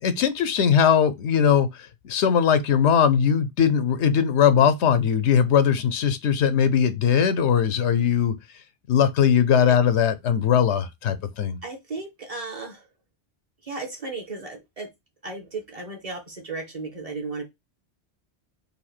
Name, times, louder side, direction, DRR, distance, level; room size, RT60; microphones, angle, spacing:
voice 1, 0.0-1.7 2.0-8.3 8.9-11.6, left 8 dB, 90° left, 1.0 m, -20 dB
voice 2, 11.6-12.8 13.7-14.9 15.2-17.4, right 3 dB, 30° right, 1.4 m, -35 dB
4.2 x 2.7 x 4.2 m
omnidirectional pair, 1.1 m